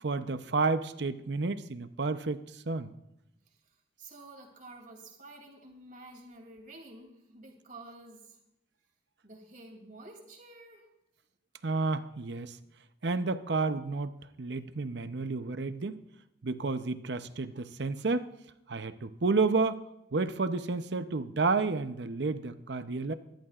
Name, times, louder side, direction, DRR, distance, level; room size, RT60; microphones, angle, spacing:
voice 1, 0.0-2.9 11.6-12.6 13.0-14.1 14.4-16.0 16.4-18.3 18.7-19.8 20.1-23.1, right 3 dB, 70° right, 11 dB, 0.7 m, -31 dB
voice 2, 4.0-8.4 9.2-10.9, right 2 dB, 50° right, 1 dB, 2.8 m, -50 dB
24.5 x 11.5 x 2.5 m, 0.85 s
head